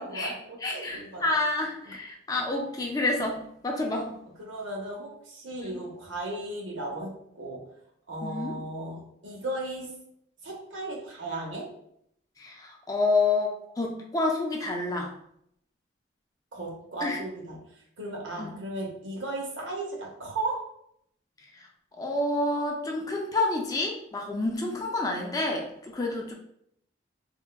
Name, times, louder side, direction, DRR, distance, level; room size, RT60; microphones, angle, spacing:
voice 1, 0.0-1.4 1.9-2.0 3.8-4.1 4.4-7.6 8.1-9.9 10.4-11.7 16.5-17.6 18.0-20.6, right 2 dB, 85° right, -1 dB, 0.8 m, -36 dB
voice 2, 0.6-4.1 5.6-5.8 8.2-8.6 12.4-15.1 17.0-17.2 18.4-18.6 22.0-26.3, left 2 dB, 20° left, 0 dB, 0.4 m, -29 dB
3.5 x 2.1 x 2.2 m, 0.72 s
head